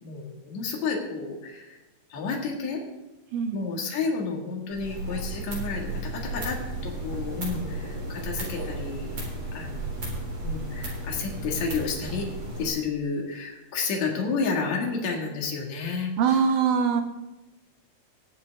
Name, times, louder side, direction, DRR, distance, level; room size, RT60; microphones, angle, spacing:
voice 1, 0.0-1.8 2.1-2.8 3.5-6.6 6.8-9.1 9.5-10.0 10.4-12.3 12.6-16.4, left 4 dB, 65° left, -1 dB, 3.1 m, -31 dB
Heart mechanic valve, 4.7-12.7, right 1 dB, 45° right, 4.9 m, -34 dB
voice 2, 16.2-17.0, right 6 dB, 85° right, 5 dB, 2.7 m, -22 dB
20.5 x 8.0 x 3.5 m, 1.0 s
omnidirectional pair, 3.6 m